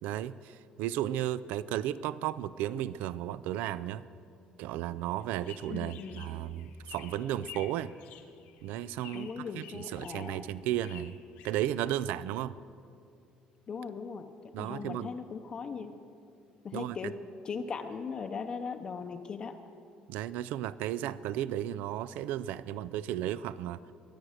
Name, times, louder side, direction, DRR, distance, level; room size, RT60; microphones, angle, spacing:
voice 1, 0.0-4.0 4.6-7.9 8.6-11.2 11.4-12.6 14.5-15.1 16.7-17.0 20.1-23.8, right 12 dB, 80° right, 17 dB, 0.4 m, -34 dB
sound 1, 5.2-12.2, left 10 dB, 90° left, 1.6 m, -52 dB
voice 2, 5.7-6.3 9.1-10.4 13.7-16.0 16.6-19.6, left 5 dB, 30° left, 5 dB, 0.6 m, -39 dB
23.0 x 9.1 x 6.4 m, 2.5 s
cardioid pair, 160°, 3 cm